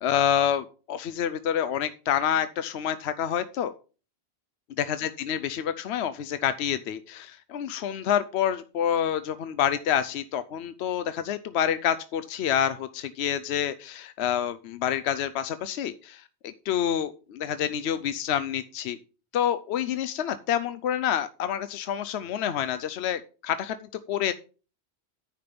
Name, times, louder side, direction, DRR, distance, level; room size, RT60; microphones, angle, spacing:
voice 1, 0.0-3.7 4.8-19.0 19.3-24.3, left 9 dB, 80° left, 12 dB, 0.9 m, -28 dB
10.0 x 5.1 x 5.9 m, 0.36 s
omnidirectional pair, 1.1 m